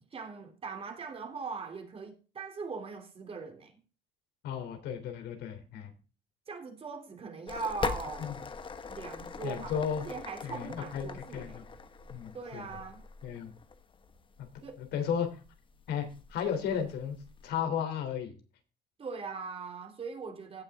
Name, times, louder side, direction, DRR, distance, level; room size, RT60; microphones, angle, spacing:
voice 1, 0.1-3.8 6.5-8.4 8.9-11.7 12.3-13.0 14.6-14.8 19.0-20.6, right 4 dB, 35° right, 3.0 m, -41 dB
voice 2, 4.4-5.9 8.2-8.3 9.4-10.0 10.4-11.6 12.1-12.7 13.2-13.5 14.4-14.5 14.8-15.4 15.9-17.2 17.4-18.3, left 8 dB, 80° left, 3.2 m, -34 dB
sound 1, 7.5-17.5, left 5 dB, 30° left, 1.1 m, -42 dB
16.5 x 6.2 x 3.6 m
cardioid pair, 110°, 17 cm